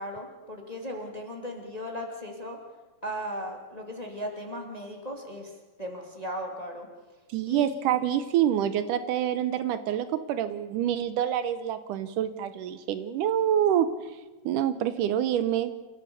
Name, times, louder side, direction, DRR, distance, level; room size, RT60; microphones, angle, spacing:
voice 1, 0.0-2.6 3.0-5.5 5.8-6.9 7.5-7.7, equal, 15° left, 2 dB, 2.1 m, -37 dB
voice 2, 7.3-14.2 14.5-15.7, right 10 dB, 75° right, 12 dB, 2.2 m, -27 dB
27.5 x 14.0 x 6.9 m, 1.2 s
omnidirectional pair, 3.9 m